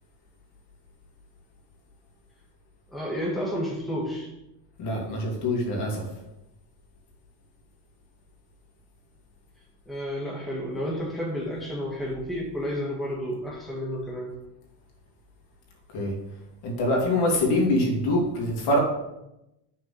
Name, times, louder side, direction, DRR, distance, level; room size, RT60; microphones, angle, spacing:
voice 1, 2.9-4.3 9.9-14.3, equal, ahead, -4 dB, 1.8 m, -31 dB
voice 2, 4.8-6.0 15.9-16.1 16.6-18.8, left 1 dB, 55° left, -2 dB, 3.0 m, -24 dB
6.3 x 4.7 x 6.6 m, 0.89 s
supercardioid pair, 115°, 47 cm